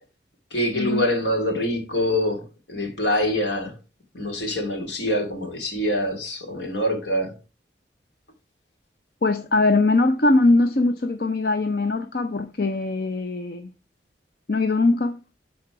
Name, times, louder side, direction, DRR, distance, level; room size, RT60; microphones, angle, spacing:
voice 1, 0.5-3.7 4.1-7.3, left 1 dB, 75° left, 2.6 m, -25 dB
voice 2, 9.2-13.7 14.5-15.2, left 2 dB, 55° left, 0.6 m, -21 dB
12.5 x 4.2 x 4.8 m
head